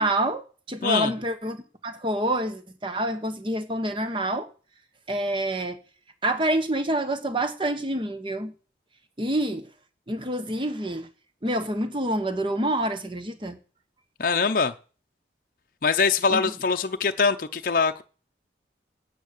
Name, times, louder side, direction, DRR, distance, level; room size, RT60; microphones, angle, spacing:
voice 1, 0.0-4.5 5.1-5.8 6.2-8.5 9.2-9.7 10.1-11.1 11.4-13.6 16.3-16.4, right 1 dB, 30° right, 1.2 m, -27 dB
voice 2, 14.2-14.7 15.8-18.0, left 5 dB, 50° left, 0.6 m, -23 dB
9.2 x 9.0 x 6.6 m
head